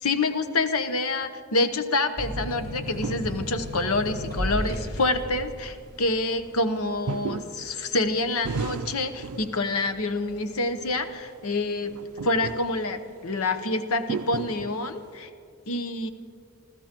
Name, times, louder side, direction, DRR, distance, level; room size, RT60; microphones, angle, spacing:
voice 1, 0.0-11.9 12.2-15.3 15.7-16.1, left 2 dB, 75° left, 9 dB, 0.9 m, -27 dB
sound 1, 2.2-9.4 9.9-10.6, equal, 15° left, 3.3 m, -35 dB
sound 2, 2.9-3.9 4.4-4.5 4.9-5.0 7.1-10.1 10.5-11.1 11.5-13.3 14.0-15.2, right 5 dB, 75° right, 0.4 m, -35 dB
28.5 x 14.5 x 3.0 m, 2.3 s
head